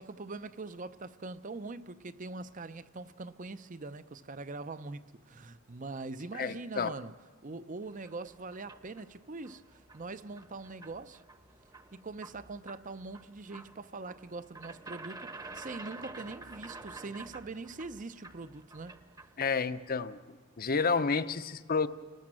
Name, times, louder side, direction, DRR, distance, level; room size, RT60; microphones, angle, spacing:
voice 1, 0.0-7.1 7.4-11.2 11.9-19.0, right 3 dB, 40° right, 0.7 m, -43 dB
voice 2, 6.4-6.9 19.4-20.2 20.6-21.9, left 5 dB, 45° left, 0.8 m, -30 dB
sound 1, 7.8-19.5, right 3 dB, 20° right, 1.0 m, -50 dB
30.0 x 19.5 x 7.6 m
head